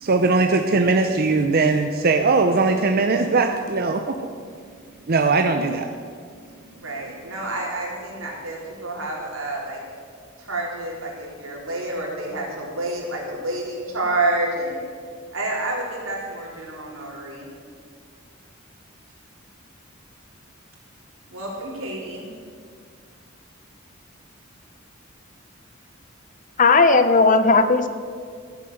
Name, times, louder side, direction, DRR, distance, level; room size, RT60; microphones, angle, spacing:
voice 1, 0.0-4.2 5.1-5.9, right 3 dB, 50° right, 5 dB, 0.7 m, -20 dB
voice 2, 6.8-9.8 10.4-14.8 15.3-17.5 21.3-22.3, right 2 dB, 90° right, -3 dB, 3.8 m, -29 dB
voice 3, 26.6-27.9, left 3 dB, 40° left, 10 dB, 0.7 m, -15 dB
14.5 x 7.3 x 7.9 m, 2.1 s
head